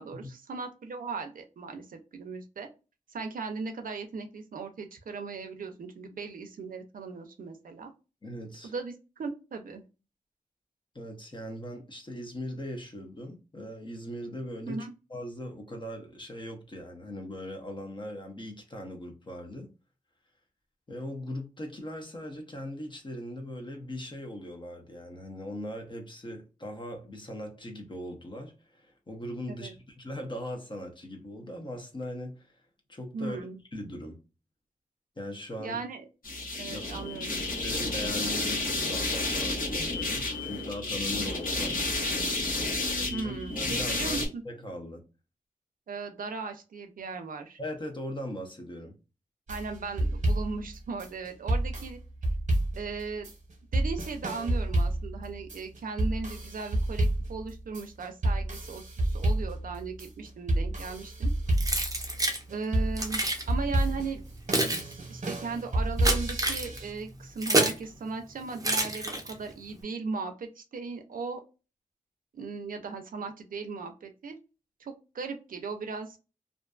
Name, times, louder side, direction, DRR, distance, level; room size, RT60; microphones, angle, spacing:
voice 1, 0.0-2.7 3.1-7.9 8.6-9.8 14.7-14.9 29.5-29.7 33.1-33.6 35.6-36.0 36.5-37.4 43.1-44.2 45.9-47.6 49.5-52.0 52.7-53.3 53.7-61.3 62.5-63.2 63.5-64.2 64.5-71.4 72.3-74.4 74.8-76.2, right 4 dB, 85° right, 0.4 m, -37 dB
voice 2, 8.2-8.7 10.9-19.7 20.9-32.6 32.9-34.2 35.2-35.8 36.7-36.8 37.4-41.8 42.9-45.1 47.6-49.0, left 1 dB, 35° left, 0.6 m, -40 dB
sound 1, 36.2-44.3, left 2 dB, 80° left, 1.0 m, -31 dB
sound 2, 49.5-66.9, right 1 dB, 60° right, 0.8 m, -29 dB
Keys jangling, 61.6-62.4 63.0-63.4 64.2-67.9 68.6-69.5, right 2 dB, 25° right, 0.6 m, -28 dB
2.5 x 2.2 x 2.3 m
wide cardioid pair, 95°, 14 cm